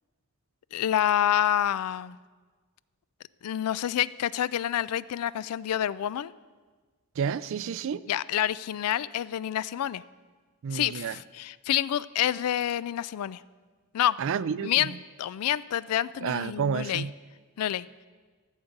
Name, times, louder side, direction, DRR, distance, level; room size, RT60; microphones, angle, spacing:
voice 1, 0.7-2.2 3.4-6.3 8.1-10.0 10.7-13.4 13.9-14.2 14.6-14.9 15.2-17.1 17.6-17.9, left 11 dB, 90° left, 19 dB, 0.3 m, -28 dB
voice 2, 7.2-8.0 10.6-11.2 14.2-15.0 16.2-17.1, right 7 dB, 65° right, 17 dB, 0.4 m, -30 dB
15.0 x 7.2 x 5.3 m, 1.4 s
head